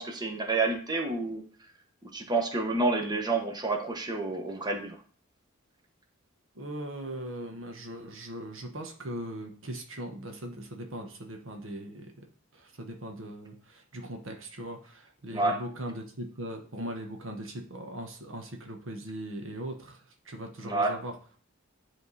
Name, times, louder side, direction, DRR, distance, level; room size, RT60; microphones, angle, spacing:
voice 1, 0.0-1.4 2.0-5.0 15.3-15.6 20.6-20.9, right 3 dB, 20° right, 3 dB, 1.1 m, -29 dB
voice 2, 6.5-12.2 12.5-21.1, right 1 dB, 70° right, 3 dB, 1.2 m, -40 dB
9.9 x 3.7 x 4.1 m, 0.43 s
head